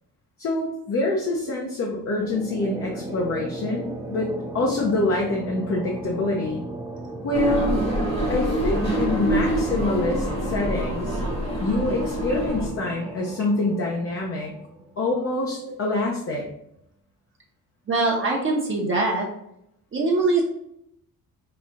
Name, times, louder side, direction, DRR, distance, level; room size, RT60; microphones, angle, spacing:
voice 1, 0.4-6.6 7.2-7.8 8.3-11.2 11.6-14.6 15.0-16.4, left 2 dB, 40° left, -2 dB, 0.7 m, -26 dB
sound 1, 2.0-15.2, right 2 dB, 10° right, 0.4 m, -36 dB
sound 2, 7.3-12.7, right 1 dB, 15° left, 1.1 m, -26 dB
sound 3, 7.4-13.5, right 2 dB, 75° right, 1.1 m, -45 dB
voice 2, 17.9-19.3 19.9-20.4, right 3 dB, 35° right, -3 dB, 0.9 m, -23 dB
5.8 x 2.4 x 2.5 m, 0.77 s
cardioid pair, 125°, 35 cm